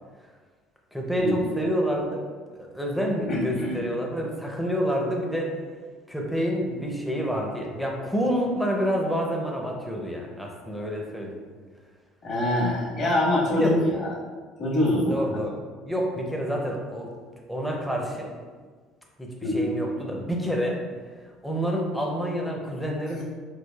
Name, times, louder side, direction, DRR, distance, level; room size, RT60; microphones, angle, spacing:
voice 1, 0.9-2.3 2.6-5.5 6.1-11.4 13.5-13.8 15.1-15.5 15.9-17.1 17.5-18.3 19.2-19.3 19.5-20.8 21.4-23.2, equal, ahead, -1 dB, 0.5 m, -28 dB
voice 2, 3.3-3.8 12.2-14.1 14.6-15.4 19.4-19.7, left 1 dB, 45° left, -5 dB, 1.1 m, -25 dB
4.6 x 2.4 x 2.3 m, 1.5 s
cardioid pair, 135°, 0 cm